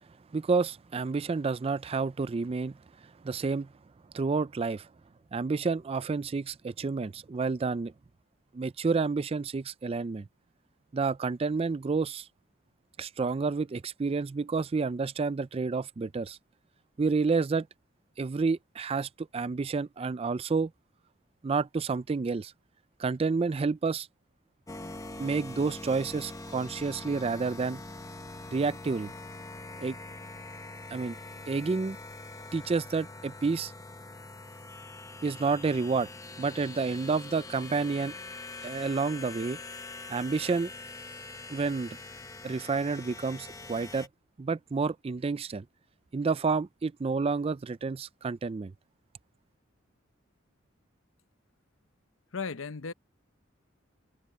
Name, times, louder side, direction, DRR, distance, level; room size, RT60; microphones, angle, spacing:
voice 1, 0.3-3.7 4.1-4.9 5.3-7.9 8.5-10.3 10.9-12.3 13.0-16.4 17.0-17.7 18.2-20.7 21.4-22.5 23.0-24.1 25.2-27.8 28.5-29.1 29.8-30.0 30.9-31.2 31.5-32.0 32.5-33.7 35.2-36.1 36.4-38.1 38.6-39.6 40.1-40.7 41.5-42.0 42.4-44.1 44.4-45.6 46.1-48.7, right 4 dB, 30° right, 0.4 m, -29 dB
sound 1, 24.7-44.1, left 2 dB, 15° left, 0.9 m, -44 dB
voice 2, 52.3-52.9, left 5 dB, 75° left, 0.8 m, -35 dB
head